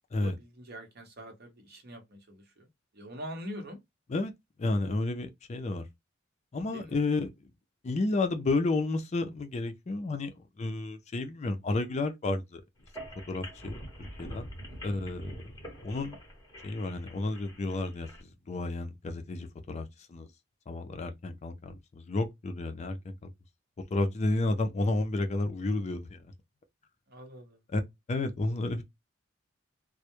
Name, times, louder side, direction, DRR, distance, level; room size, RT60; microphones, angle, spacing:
voice 1, 0.1-2.7 2.9-3.8 6.6-7.0 14.7-15.1 27.1-27.6, equal, 55° right, 0.8 m, -44 dB
voice 2, 4.6-5.8 6.5-7.3 7.8-12.6 13.3-13.8 14.2-14.5 14.8-15.4 15.8-16.2 16.6-18.1 18.5-20.3 20.7-23.3 23.9-26.2 27.7-27.8 28.1-28.8, left 2 dB, 35° left, 0.4 m, -31 dB
sound 1, 12.8-18.2, equal, 20° left, 1.0 m, -45 dB
2.2 x 2.0 x 2.8 m
head